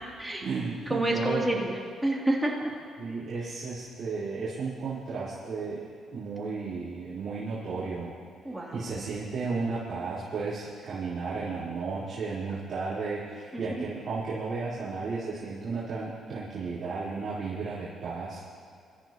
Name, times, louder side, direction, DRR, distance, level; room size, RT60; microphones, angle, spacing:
voice 1, 0.4-1.6 3.0-8.2 8.7-18.4, right 4 dB, 50° right, -11 dB, 4.3 m, -34 dB
voice 2, 0.9-2.7 8.4-9.0 13.5-13.8, right 1 dB, 5° right, -3 dB, 3.1 m, -29 dB
25.0 x 14.0 x 3.1 m, 2.3 s
cardioid pair, 90°, 0 cm